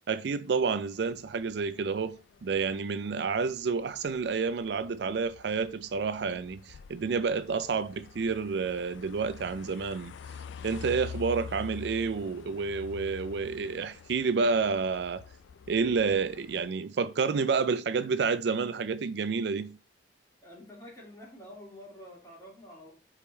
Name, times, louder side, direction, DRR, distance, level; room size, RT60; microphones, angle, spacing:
voice 1, 0.1-10.1 10.6-15.2 15.7-19.8, right 5 dB, 65° right, 0.4 m, -29 dB
sound 1, 0.5-16.7, left 6 dB, 85° left, 0.3 m, -47 dB
voice 2, 20.4-22.9, left 1 dB, 20° left, 2.9 m, -48 dB
5.3 x 4.9 x 4.4 m
head